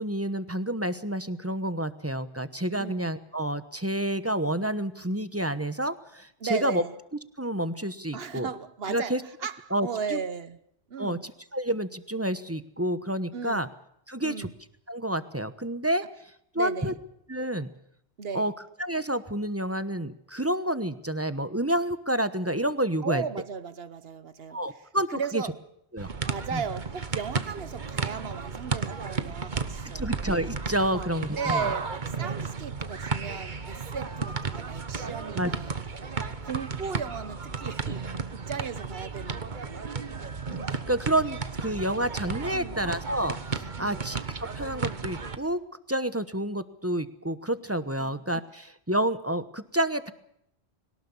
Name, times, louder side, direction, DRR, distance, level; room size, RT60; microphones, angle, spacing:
voice 1, 0.0-6.8 7.4-8.5 8.9-9.2 9.7-10.2 11.0-13.7 14.1-14.5 14.9-16.0 16.5-16.9 17.3-17.7 18.3-18.5 18.8-23.2 24.5-25.4 25.9-26.1 26.5-26.6 29.9-31.7 35.4-35.5 40.5-44.2 44.5-45.6 45.9-50.1, right 1 dB, 15° right, 1.1 m, -29 dB
voice 2, 6.4-6.9 8.1-10.6 10.9-11.2 13.3-13.7 14.2-14.5 16.6-17.0 18.2-18.5 23.0-24.6 25.1-25.6 26.2-30.1 30.9-31.1 31.4-35.8 36.4-39.8 42.5-42.9 43.8-44.1 48.0-48.2, right 6 dB, 70° right, 1.3 m, -36 dB
sound 1, 26.0-45.4, right 5 dB, 45° right, 1.4 m, -33 dB
22.0 x 19.0 x 7.2 m
omnidirectional pair, 1.1 m